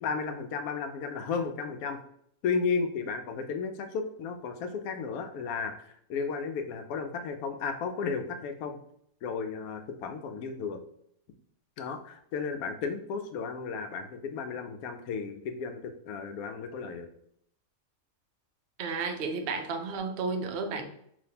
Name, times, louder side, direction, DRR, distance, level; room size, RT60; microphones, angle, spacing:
voice 1, 0.0-2.0 2.4-8.8 9.2-10.8 11.8-17.1, left 5 dB, 80° left, 7 dB, 1.0 m, -34 dB
voice 2, 18.8-20.8, right 4 dB, 65° right, 5 dB, 0.6 m, -32 dB
5.1 x 2.8 x 2.8 m, 0.70 s
omnidirectional pair, 1.5 m